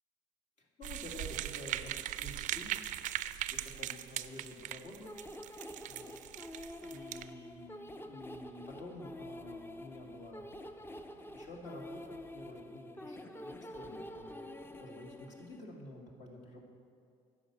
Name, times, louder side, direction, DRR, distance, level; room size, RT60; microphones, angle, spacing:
voice 1, 0.6-2.7 3.5-5.1 5.9-6.1 6.8-10.5 11.3-16.6, left 2 dB, 55° left, -1 dB, 2.1 m, -50 dB
sound 1, 0.8-7.3, right 13 dB, 60° right, 0.4 m, -40 dB
sound 2, 5.0-15.6, left 1 dB, 15° left, 0.6 m, -48 dB
sound 3, 5.8-12.6, equal, 85° left, 1.9 m, -64 dB
10.0 x 5.2 x 7.5 m, 2.3 s
supercardioid pair, 70°, 15 cm